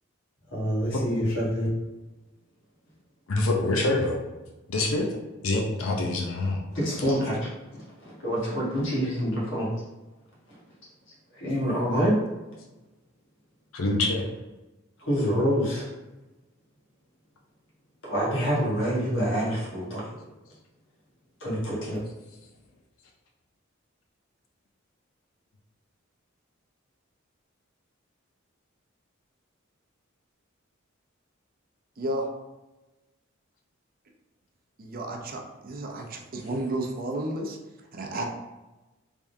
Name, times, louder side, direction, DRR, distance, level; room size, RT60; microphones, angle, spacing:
voice 1, 0.5-1.7 6.7-9.7 11.3-12.2 15.0-15.9 18.0-20.1 21.4-22.0, equal, 65° left, -5 dB, 1.4 m, -27 dB
voice 2, 3.3-4.2 4.7-5.1 5.4-6.6 13.7-14.3, left 2 dB, 85° left, 1 dB, 0.6 m, -25 dB
voice 3, 32.0-32.3 34.8-37.6 37.9-38.2, right 1 dB, 45° right, 1 dB, 0.6 m, -32 dB
3.5 x 3.4 x 2.6 m, 1.1 s
head